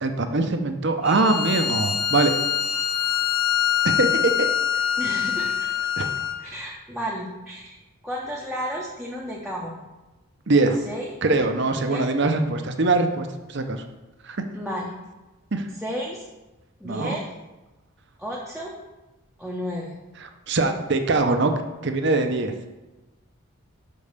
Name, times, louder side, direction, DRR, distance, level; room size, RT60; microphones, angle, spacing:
voice 1, 0.0-2.3 3.8-4.5 6.0-6.1 10.5-10.8 11.2-13.8 14.2-14.4 15.5-15.6 16.8-17.2 20.5-21.5 21.8-22.5, right 3 dB, 55° right, 6 dB, 0.7 m, -22 dB
Bowed string instrument, 1.0-6.4, left 9 dB, 85° left, 1.1 m, -24 dB
voice 2, 5.0-5.7 6.4-7.8 8.0-9.8 10.8-11.1 11.8-12.1 14.5-14.9 15.8-16.2 16.8-17.3 18.2-18.7 19.4-19.9, equal, ahead, -5 dB, 0.8 m, -32 dB
5.5 x 5.4 x 6.6 m, 1.1 s
head